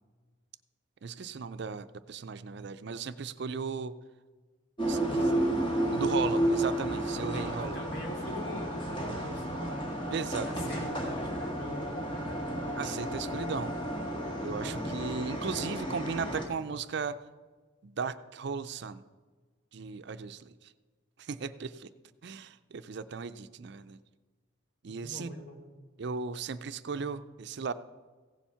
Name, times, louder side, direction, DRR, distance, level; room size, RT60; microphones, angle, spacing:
voice 1, 1.0-3.9 4.9-5.2 5.9-7.8 10.1-10.8 12.8-13.8 14.4-17.2 17.8-19.0 19.7-20.7 21.2-21.9 22.2-24.0 24.8-25.3 26.0-27.7, right 5 dB, 55° right, 13 dB, 0.4 m, -36 dB
sound 1, 4.8-16.4, right 1 dB, 25° left, 1.9 m, -32 dB
voice 2, 5.0-5.6 7.6-9.9 10.4-12.7 24.9-25.6, left 1 dB, 50° left, 1 dB, 2.7 m, -43 dB
16.0 x 7.3 x 5.6 m, 1.4 s
head